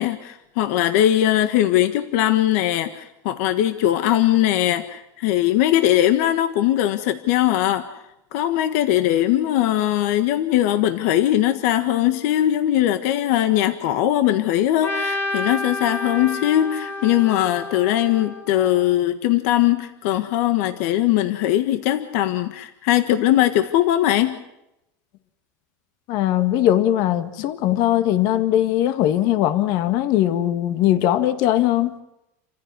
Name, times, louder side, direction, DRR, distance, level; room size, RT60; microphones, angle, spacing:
voice 1, 0.0-7.8 8.3-24.4, left 13 dB, 70° left, 1.5 m, -20 dB
Trumpet, 14.8-19.0, left 2 dB, 25° left, 3.4 m, -30 dB
voice 2, 26.1-31.9, left 12 dB, 55° left, 1.9 m, -20 dB
29.0 x 15.0 x 9.7 m
supercardioid pair, 150°, 8 cm